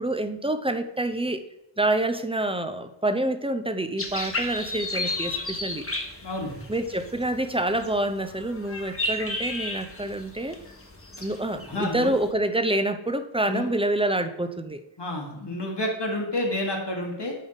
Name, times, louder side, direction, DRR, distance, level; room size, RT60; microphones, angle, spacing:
voice 1, 0.0-1.4 1.8-5.9 6.7-10.6 11.2-14.8, right 1 dB, 10° right, 9 dB, 0.5 m, -27 dB
sound 1, 4.0-12.3, left 2 dB, 30° left, 1.1 m, -34 dB
voice 2, 6.2-6.6 11.6-12.2 13.5-13.7 15.0-17.3, left 1 dB, 60° left, 0 dB, 1.6 m, -29 dB
9.2 x 3.6 x 3.9 m, 0.89 s
wide cardioid pair, 50°, 47 cm